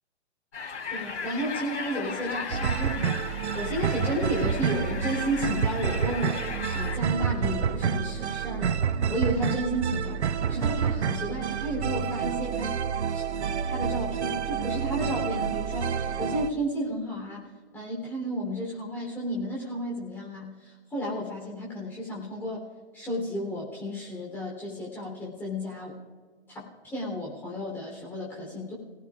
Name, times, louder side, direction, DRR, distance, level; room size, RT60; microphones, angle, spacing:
sound 1, 0.5-7.0, left 5 dB, 80° left, 4.6 m, -36 dB
voice 1, 0.9-6.4 6.7-8.8 9.1-10.1 10.5-12.8 13.1-13.2 13.6-17.5 17.7-22.6 22.9-25.9 26.5-28.7, equal, 5° left, -5 dB, 3.4 m, -32 dB
sound 2, 2.5-16.5, right 7 dB, 70° right, 0.8 m, -28 dB
30.0 x 18.0 x 2.5 m, 1.5 s
hypercardioid pair, 175°, 35 cm